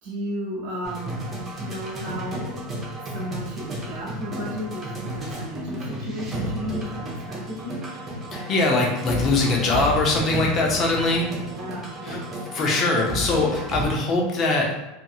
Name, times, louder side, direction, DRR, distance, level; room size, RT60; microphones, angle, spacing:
voice 1, 0.0-1.1 1.6-2.5 3.1-7.8 11.4-12.3, equal, 65° right, -2 dB, 1.2 m, -34 dB
sound 1, 0.8-13.8, right 1 dB, 20° right, 0.6 m, -32 dB
voice 2, 8.3-11.3 12.0-12.2 12.5-14.7, left 2 dB, 30° left, 0 dB, 0.5 m, -22 dB
2.7 x 2.7 x 2.3 m, 0.97 s
supercardioid pair, 155°, 0 cm